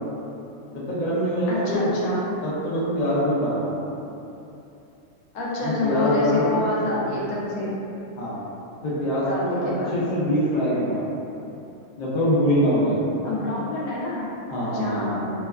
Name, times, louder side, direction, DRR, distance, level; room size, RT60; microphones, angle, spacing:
voice 1, 0.7-1.9 2.4-3.7 5.6-6.6 8.2-8.4 8.8-11.0 12.0-13.0 14.5-15.3, equal, 55° left, -8 dB, 0.5 m, -24 dB
voice 2, 1.5-2.2 5.3-7.7 9.1-10.0 13.2-14.3 14.6-15.3, left 2 dB, 85° left, -6 dB, 1.0 m, -27 dB
2.8 x 2.2 x 2.3 m, 2.8 s
omnidirectional pair, 1.5 m